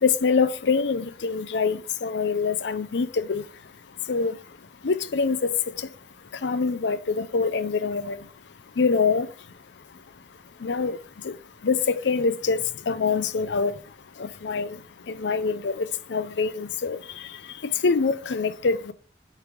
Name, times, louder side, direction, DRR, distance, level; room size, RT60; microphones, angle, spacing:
voice 1, 0.0-3.4 4.1-4.3 4.8-5.4 6.4-8.2 8.8-9.3 10.6-11.0 11.2-11.3 11.6-13.7 14.2-14.8 15.1-17.0 17.8-18.9, left 4 dB, 90° left, 0.5 m, -24 dB
8.2 x 3.4 x 3.6 m
head